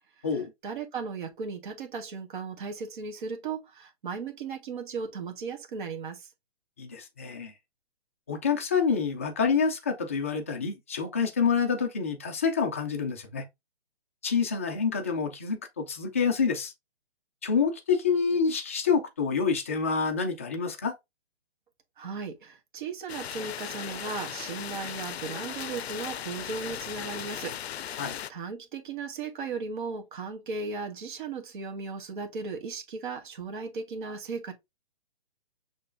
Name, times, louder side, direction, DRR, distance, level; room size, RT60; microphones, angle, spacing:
voice 1, 0.2-6.3 22.0-34.5, right 5 dB, 50° right, 1.4 m, -36 dB
voice 2, 6.8-7.5 8.3-13.5 14.2-16.7 17.4-21.0 28.0-28.2, left 5 dB, 15° left, 0.3 m, -27 dB
sound 1, 23.1-28.3, left 10 dB, 80° left, 0.5 m, -37 dB
6.5 x 3.1 x 2.5 m
hypercardioid pair, 145°, 31 cm